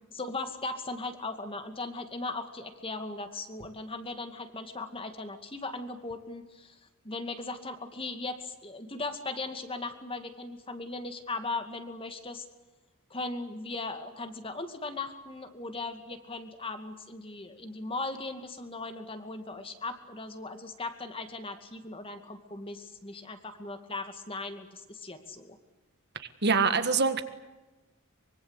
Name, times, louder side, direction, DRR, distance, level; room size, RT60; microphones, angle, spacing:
voice 1, 0.1-6.8 7.0-12.4 13.1-25.6, left 3 dB, 25° left, 8 dB, 2.3 m, -38 dB
voice 2, 26.2-27.2, right 4 dB, 50° right, 10 dB, 1.7 m, -25 dB
24.5 x 23.5 x 8.3 m, 1.1 s
head